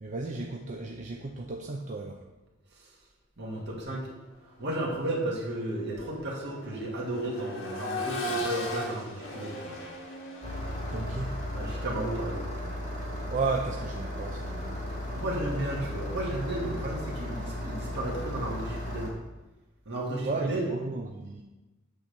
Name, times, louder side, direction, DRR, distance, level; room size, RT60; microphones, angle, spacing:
voice 1, 0.0-2.2 10.9-11.4 13.3-14.8 20.2-21.4, right 3 dB, 35° right, 1 dB, 0.6 m, -34 dB
voice 2, 3.4-4.1 4.6-9.8 11.5-12.5 15.1-19.1 19.9-20.7, right 1 dB, 60° right, -3 dB, 2.1 m, -33 dB
Accelerating revving vroom, 4.5-4.7 5.1-15.0 16.7-16.8, equal, 75° left, 1.8 m, -39 dB
Engine starting, 10.4-19.1, left 1 dB, 35° left, 2.4 m, -35 dB
8.5 x 4.0 x 6.7 m, 1.1 s
head